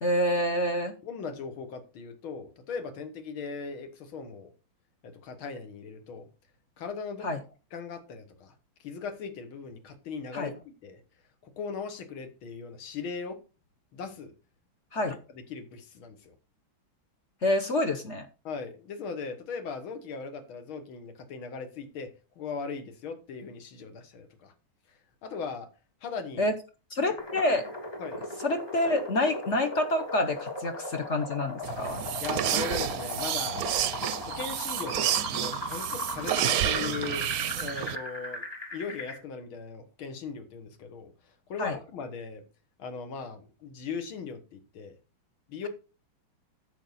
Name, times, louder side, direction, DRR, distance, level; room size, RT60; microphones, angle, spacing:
voice 1, 0.0-1.0 7.2-7.4 10.3-10.5 14.9-15.2 17.4-18.3 26.4-26.5 26.9-27.7 28.4-32.0 41.6-41.7, left 1 dB, 50° left, 0.9 m, -27 dB
voice 2, 1.0-4.5 5.0-6.3 6.8-7.3 7.7-8.5 8.8-10.6 10.8-11.0 11.4-13.4 13.9-14.3 15.5-16.3 18.4-24.5 25.2-25.7 26.0-26.5 28.0-28.2 32.2-33.7 34.3-37.3 37.5-38.4 38.7-42.4 42.8-44.9 45.5-45.7, left 5 dB, 85° left, 2.2 m, -39 dB
sound 1, 27.2-39.2, left 1 dB, 15° left, 1.2 m, -38 dB
sound 2, 31.6-38.0, right 10 dB, 65° right, 0.9 m, -30 dB
10.0 x 7.2 x 4.0 m
omnidirectional pair, 2.2 m